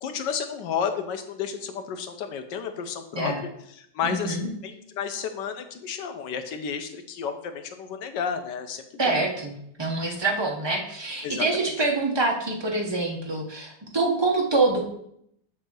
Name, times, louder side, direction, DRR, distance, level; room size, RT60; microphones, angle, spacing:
voice 1, 0.0-4.4 4.6-9.2 11.2-11.7, left 7 dB, 75° left, 7 dB, 1.4 m, -32 dB
voice 2, 4.0-4.5 9.0-9.5 9.8-14.8, right 3 dB, 25° right, 0 dB, 0.6 m, -25 dB
7.9 x 2.8 x 6.1 m, 0.71 s
omnidirectional pair, 1.9 m